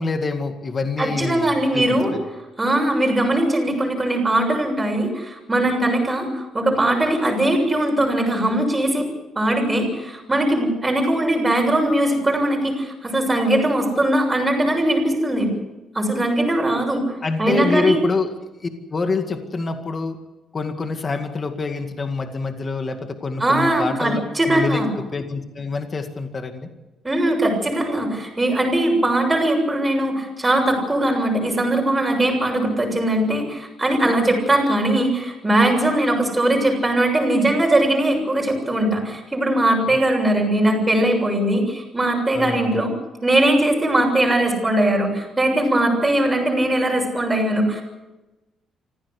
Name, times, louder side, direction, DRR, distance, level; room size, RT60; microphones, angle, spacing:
voice 1, 0.0-2.2 17.2-18.3 18.6-20.2 20.5-24.2 24.5-24.8 25.1-26.7 39.9-40.0 42.3-42.6, left 3 dB, 30° left, 6 dB, 2.1 m, -26 dB
voice 2, 1.0-2.1 2.6-9.1 9.3-15.5 15.9-17.1 17.4-18.0 23.4-24.9 27.0-42.9 43.2-47.8, right 1 dB, 10° right, 0 dB, 7.0 m, -20 dB
25.5 x 15.5 x 8.3 m, 1.0 s
cardioid pair, 140°, 0 cm